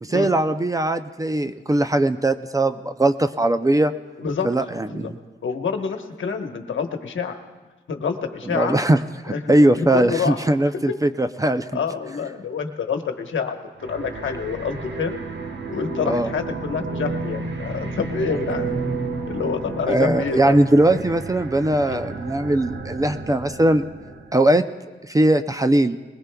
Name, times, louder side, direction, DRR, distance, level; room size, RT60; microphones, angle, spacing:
voice 1, 0.0-3.9 4.4-5.2 8.5-11.7 16.1-16.3 19.9-23.9 24.3-24.6 25.0-26.0, right 1 dB, 15° right, 10 dB, 0.4 m, -20 dB
voice 2, 5.4-7.4 7.9-8.8 9.3-10.4 10.7-10.8 11.7-13.6 13.9-15.1 15.7-18.7 19.3-20.6 21.9-22.0, left 5 dB, 80° left, 5 dB, 1.1 m, -27 dB
sound 1, 13.8-24.4, right 3 dB, 65° right, 1.2 m, -32 dB
21.0 x 20.5 x 2.3 m, 1.3 s
wide cardioid pair, 120°, 20 cm